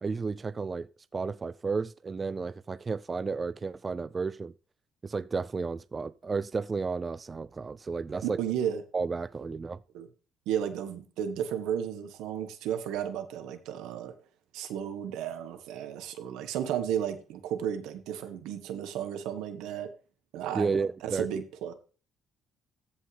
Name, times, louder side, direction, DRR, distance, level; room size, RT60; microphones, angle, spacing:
voice 1, 0.0-4.5 5.0-8.4 8.9-9.8 20.5-21.3, right 4 dB, 30° right, 0.4 m, -32 dB
voice 2, 8.4-8.8 9.9-10.1 10.5-14.1 14.5-19.9 20.3-21.7, right 9 dB, 85° right, 1.4 m, -33 dB
14.5 x 5.5 x 3.4 m
cardioid pair, 100°, 0 cm